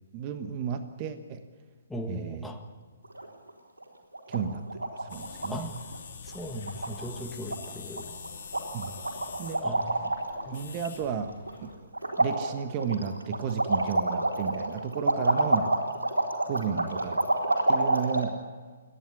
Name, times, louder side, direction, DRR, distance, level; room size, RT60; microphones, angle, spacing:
voice 1, 0.1-1.4 2.1-2.5 4.3-5.7 8.7-9.0 9.4-9.6 10.5-11.8 12.2-15.8 16.5-17.2 17.7-18.4, right 7 dB, 30° right, 9 dB, 1.3 m, -33 dB
voice 2, 1.9-2.7 5.5-5.8 6.2-8.1 9.6-10.1 10.4-10.6, equal, 5° left, 2 dB, 1.7 m, -38 dB
sound 1, 3.0-3.5 3.8-3.9 4.1-4.4 4.7-5.5 5.7-6.0 6.3-6.4 6.7-7.2 7.5-7.6 8.0-8.3 8.5-10.5 10.8-11.6 11.9-18.2, right 2 dB, 75° right, 4.1 m, -28 dB
sound 2, 5.1-11.8, left 6 dB, 50° left, 3.7 m, -45 dB
29.5 x 11.0 x 9.9 m, 1.4 s
figure-of-eight pair, 130°, 0 cm